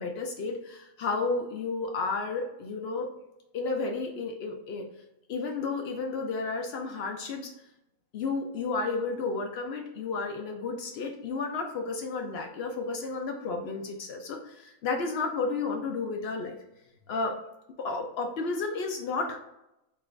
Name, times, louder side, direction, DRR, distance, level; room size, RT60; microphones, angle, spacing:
voice 1, 0.0-3.1 3.5-4.9 5.3-7.5 8.1-16.6 17.1-17.4 17.8-19.4, left 4 dB, 65° left, 3 dB, 0.6 m, -32 dB
3.7 x 2.4 x 3.2 m, 0.87 s
omnidirectional pair, 1.6 m